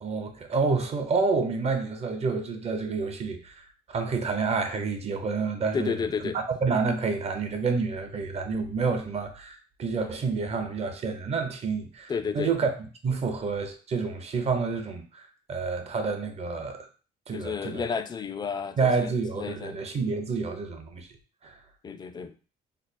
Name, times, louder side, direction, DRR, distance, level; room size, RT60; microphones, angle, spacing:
voice 1, 0.0-3.5 3.9-6.0 6.3-12.7 13.0-15.2 15.5-16.9 17.3-17.9 18.8-21.1 21.4-21.6, right 4 dB, 40° right, 0.7 m, -28 dB
voice 2, 5.7-6.4 12.1-12.6 17.3-19.8 21.8-22.4, left 6 dB, 25° left, 0.4 m, -32 dB
3.3 x 2.0 x 4.1 m
cardioid pair, 110°, 17 cm